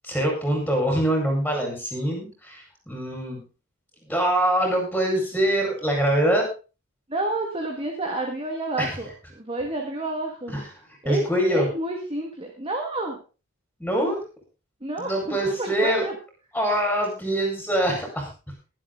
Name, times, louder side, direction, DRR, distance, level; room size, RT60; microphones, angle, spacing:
voice 1, 0.0-3.4 4.0-6.5 8.8-8.9 10.5-10.7 11.0-11.7 13.8-14.2 15.0-16.0 16.5-18.3, right 1 dB, 5° left, 0 dB, 4.7 m, -24 dB
voice 2, 7.1-10.5 11.0-13.2 14.8-16.1, right 2 dB, 25° right, 2 dB, 1.9 m, -30 dB
22.5 x 7.7 x 3.8 m, 0.34 s
head